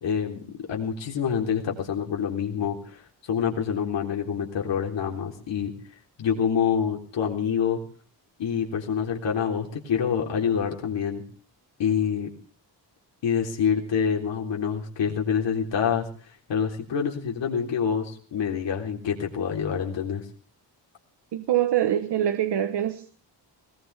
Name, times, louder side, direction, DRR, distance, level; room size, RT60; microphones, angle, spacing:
voice 1, 0.0-5.7 6.2-7.8 8.4-11.2 11.8-12.3 13.2-16.0 16.5-20.2, left 7 dB, 75° left, 3.8 m, -26 dB
voice 2, 21.3-23.1, right 11 dB, 65° right, 1.2 m, -24 dB
20.5 x 20.0 x 3.5 m
wide cardioid pair, 170°, 43 cm